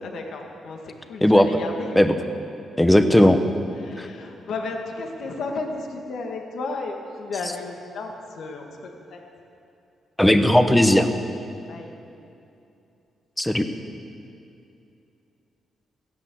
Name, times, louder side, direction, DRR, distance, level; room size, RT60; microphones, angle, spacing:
voice 1, 0.0-2.3 3.7-9.2 11.7-11.9, left 3 dB, 70° left, 2 dB, 1.8 m, -33 dB
voice 2, 2.8-3.4 4.0-4.1 10.2-11.1 13.4-13.6, left 1 dB, 5° left, 8 dB, 1.0 m, -16 dB
15.5 x 10.5 x 7.8 m, 2.7 s
cardioid pair, 95°, 0 cm